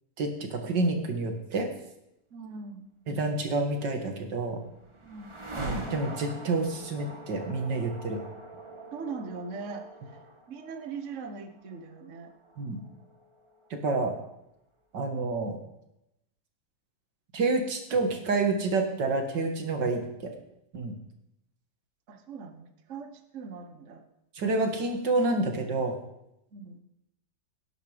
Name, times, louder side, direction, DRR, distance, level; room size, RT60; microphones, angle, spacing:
voice 1, 0.2-1.7 3.1-4.6 5.6-8.2 12.6-12.8 13.7-14.1 14.9-15.6 17.3-20.3 20.7-20.9 24.3-26.0, right 3 dB, 75° right, 4 dB, 2.5 m, -28 dB
voice 2, 2.3-2.9 5.0-5.4 8.9-10.2 10.5-12.3 22.1-24.0 26.5-26.8, right 4 dB, 45° right, 7 dB, 1.4 m, -40 dB
sound 1, 4.2-14.1, right 1 dB, 20° right, 1.3 m, -44 dB
18.0 x 10.5 x 5.2 m, 0.85 s
omnidirectional pair, 1.9 m